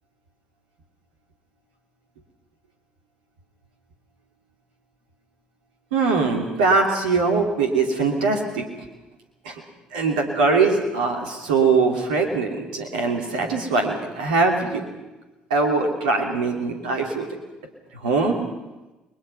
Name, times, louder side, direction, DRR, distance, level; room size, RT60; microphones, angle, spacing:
voice 1, 5.9-8.6 9.4-9.6 9.9-14.9 15.5-17.3 17.9-18.4, right 4 dB, 75° right, 2 dB, 2.9 m, -22 dB
30.0 x 21.5 x 5.6 m, 1.1 s
figure-of-eight pair, 45°, 4 cm